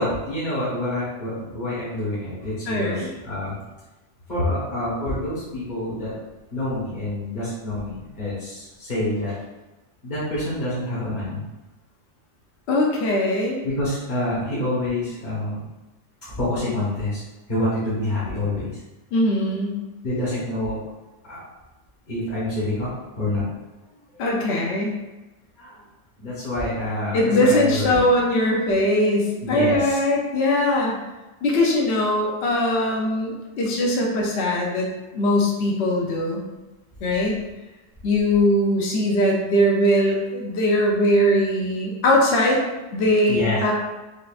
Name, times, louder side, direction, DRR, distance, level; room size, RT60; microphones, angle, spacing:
voice 1, 0.0-3.6 4.3-6.1 6.5-9.3 10.0-11.4 13.6-15.7 16.4-17.2 17.5-18.7 20.0-20.8 21.2-21.4 22.1-22.9 23.1-23.4 25.6-25.8 26.2-28.0 29.4-30.0 43.3-43.6, left 1 dB, 40° left, -11 dB, 1.2 m, -27 dB
voice 2, 2.7-3.1 12.7-13.6 19.1-19.8 24.2-25.0 27.1-31.0 31.4-34.9 35.1-36.4 37.0-37.4 38.0-42.6 42.9-43.7, left 1 dB, 70° left, -2 dB, 0.9 m, -21 dB
5.1 x 2.4 x 2.4 m, 1.1 s
omnidirectional pair, 1.2 m